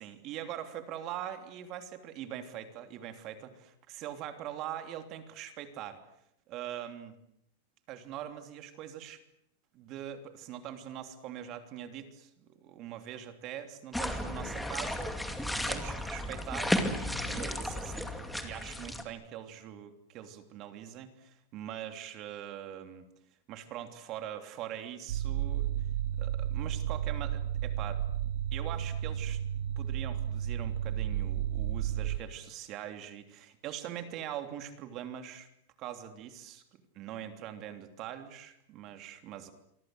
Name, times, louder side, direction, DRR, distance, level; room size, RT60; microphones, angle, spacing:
voice 1, 0.0-6.0 6.5-7.1 7.9-9.2 9.7-15.1 15.7-18.1 18.4-23.1 23.5-25.7 26.2-28.0 28.5-29.4 29.8-35.5 35.8-36.6 36.9-39.5, right 10 dB, 30° right, 8 dB, 3.1 m, -42 dB
sound 1, 13.9-19.0, left 1 dB, ahead, 2.3 m, -34 dB
sound 2, 25.1-32.2, right 10 dB, 70° right, 1.6 m, -32 dB
28.0 x 24.0 x 7.9 m, 0.76 s
supercardioid pair, 165°, 0 cm